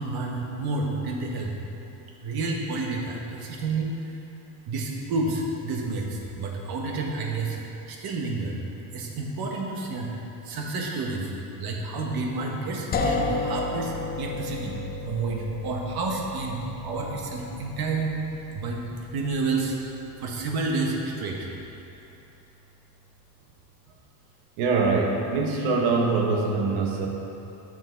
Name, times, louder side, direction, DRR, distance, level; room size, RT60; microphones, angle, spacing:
voice 1, 0.0-1.5 2.2-4.2 4.7-7.6 7.9-8.6 8.9-10.1 10.4-11.3 11.6-14.8 15.0-18.1 18.5-18.8 19.1-19.8 20.2-21.5, right 3 dB, 50° right, 0 dB, 1.4 m, -30 dB
sound 1, 12.9-22.7, left 3 dB, 20° left, 0.4 m, -34 dB
voice 2, 24.6-27.1, right 4 dB, 70° right, 0 dB, 1.4 m, -23 dB
7.7 x 6.2 x 4.6 m, 2.9 s
cardioid pair, 120°, 49 cm